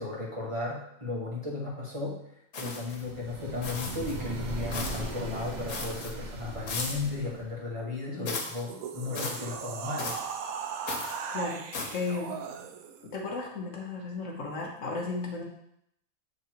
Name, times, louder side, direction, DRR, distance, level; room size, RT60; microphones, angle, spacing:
voice 1, 0.0-2.2 2.5-10.2, left 3 dB, 20° right, -6 dB, 1.4 m, -35 dB
sound 1, 2.5-3.1 3.6-4.2 4.7-5.1 5.7-6.1 6.7-7.1 8.3-8.6 9.2-9.5 10.0-10.3 10.9-11.2 11.7-12.1, left 3 dB, 85° left, 1.5 m, -36 dB
sound 2, 2.9-7.6, right 2 dB, 40° right, 0.7 m, -38 dB
sound 3, 8.5-13.1, right 6 dB, 75° right, 1.0 m, -38 dB
voice 2, 11.3-11.7 11.9-12.4 13.0-15.4, left 3 dB, 60° left, 0 dB, 1.3 m, -34 dB
7.7 x 3.3 x 4.6 m, 0.75 s
omnidirectional pair, 1.5 m